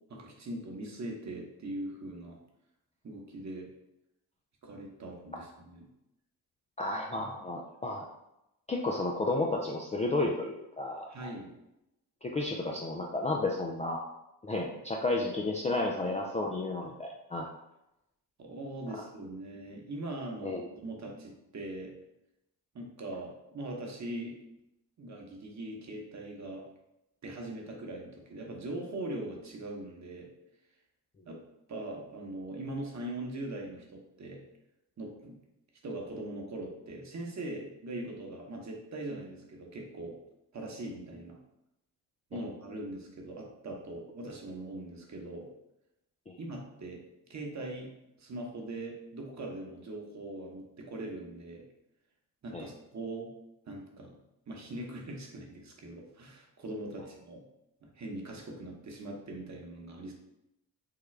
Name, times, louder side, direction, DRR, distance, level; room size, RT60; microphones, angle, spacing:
voice 1, 0.1-2.4 3.0-3.7 4.6-5.8 7.2-7.3 11.1-11.6 16.4-16.5 18.4-21.9 22.7-24.4 25.0-26.6 27.2-30.3 31.2-31.4 31.7-34.4 35.0-35.4 35.8-40.2 40.5-41.4 42.3-45.5 46.4-47.0 47.3-47.9 48.2-51.6 52.4-53.3 53.6-54.2 54.5-57.4 57.8-60.1, right 1 dB, 40° right, 0 dB, 1.0 m, -41 dB
voice 2, 6.8-8.1 8.7-11.3 12.2-14.0 14.4-17.5 20.4-20.6 42.3-42.4 46.3-46.4 52.5-52.7, left 2 dB, 15° left, -1 dB, 0.3 m, -32 dB
3.7 x 2.2 x 3.2 m, 0.88 s
supercardioid pair, 60°, 45 cm